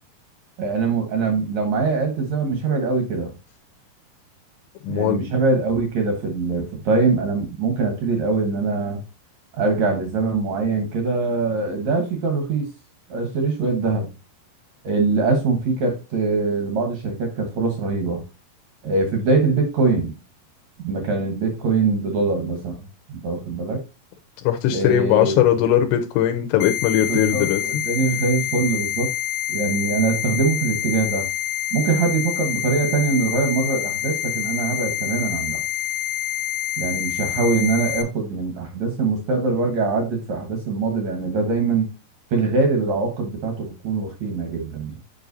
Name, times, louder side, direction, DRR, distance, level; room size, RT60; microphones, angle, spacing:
voice 1, 0.6-3.3 4.9-9.0 9.5-12.7 13.1-14.1 14.8-18.2 18.8-20.1 20.8-22.8 23.1-23.8 24.7-25.4 27.1-29.1 29.5-31.3 31.7-35.6 36.8-41.9 42.3-45.0, right 4 dB, 70° right, 1.7 m, -23 dB
voice 2, 4.8-5.2 24.4-27.8, left 10 dB, 85° left, 2.8 m, -19 dB
sound 1, 26.6-38.0, left 12 dB, 70° left, 2.4 m, -27 dB
7.7 x 5.1 x 2.6 m
omnidirectional pair, 4.9 m